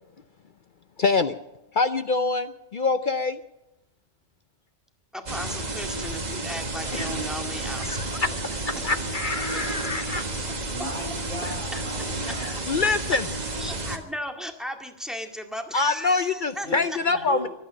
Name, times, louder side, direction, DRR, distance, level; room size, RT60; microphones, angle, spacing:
voice 1, 1.0-1.4 1.7-3.4 6.9-7.1 7.8-10.2 11.4-11.8 12.2-13.3 15.7-17.5, left 4 dB, 50° left, 0.7 m, -26 dB
voice 2, 5.1-8.4 13.6-16.7 17.1-17.3, equal, ahead, 2.0 m, -36 dB
sound 1, 5.3-14.0, right 2 dB, 35° right, 1.7 m, -31 dB
voice 3, 10.7-12.5 16.6-17.5, equal, 30° left, 5.3 m, -37 dB
23.5 x 9.3 x 6.3 m
omnidirectional pair, 1.2 m